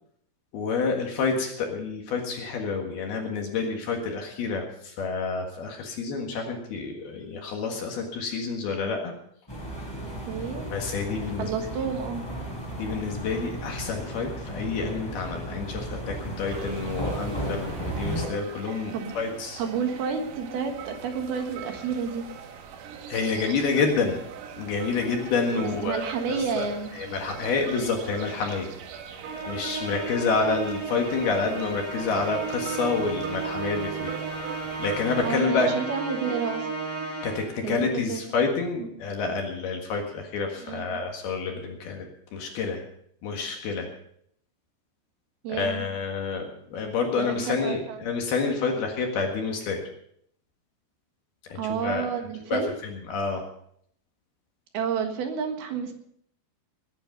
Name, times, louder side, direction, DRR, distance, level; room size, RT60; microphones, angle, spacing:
voice 1, 0.5-9.1 10.7-11.5 11.8-11.9 12.8-19.6 23.1-24.2 24.6-26.7 26.9-28.7 29.5-34.1 34.8-35.7 37.2-42.1 42.3-42.8 43.2-43.9 45.6-49.8 51.5-52.1 52.5-53.5, left 4 dB, 60° left, 2 dB, 3.1 m, -28 dB
sound 1, 9.5-18.3, right 1 dB, 5° left, 4.0 m, -34 dB
voice 2, 10.0-10.7 11.4-12.2 18.9-19.1 19.6-22.3 25.5-26.9 35.2-36.7 37.6-38.2 38.8-39.0 40.6-41.0 45.4-45.9 47.2-48.0 51.6-52.7 54.7-55.9, right 6 dB, 60° right, 5 dB, 2.9 m, -30 dB
sound 2, 16.5-35.4, right 8 dB, 80° right, 4.3 m, -42 dB
Musical instrument, 29.2-37.7, right 4 dB, 40° right, 6.2 m, -34 dB
20.5 x 10.0 x 5.3 m, 0.68 s
omnidirectional pair, 5.9 m